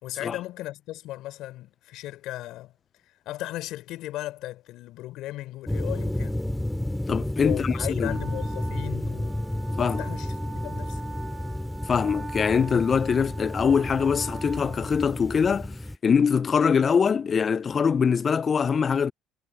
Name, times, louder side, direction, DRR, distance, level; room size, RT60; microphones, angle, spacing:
voice 1, 0.0-2.7 3.0-6.4 7.4-10.4 10.6-11.0, left 16 dB, 70° left, 5.3 m, -36 dB
sound 1, 5.7-16.0, left 1 dB, 5° left, 2.9 m, -31 dB
voice 2, 7.1-8.2 9.8-10.0 11.9-15.8 16.0-19.1, left 6 dB, 40° left, 0.4 m, -23 dB
Wind instrument woodwind instrument, 8.0-15.6, right 4 dB, 25° right, 1.4 m, -42 dB
supercardioid pair, 80°, 0 cm